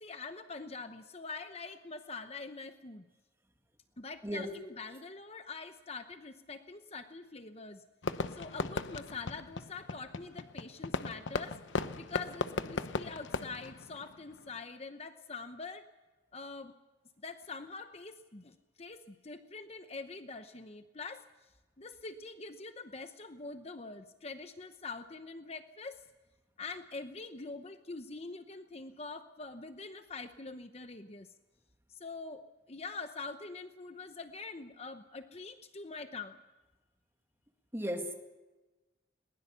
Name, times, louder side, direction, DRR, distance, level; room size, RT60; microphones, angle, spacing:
voice 1, 0.0-3.0 4.0-7.8 8.3-11.6 12.0-15.9 16.3-16.7 17.2-21.3 21.8-26.1 26.6-31.3 31.9-36.4, left 4 dB, 35° left, 8 dB, 0.9 m, -44 dB
voice 2, 4.2-4.6 37.7-38.1, equal, 15° right, 4 dB, 2.0 m, -35 dB
Fireworks, 8.0-14.6, left 3 dB, 85° left, 0.9 m, -37 dB
21.5 x 20.5 x 6.9 m, 1.2 s
head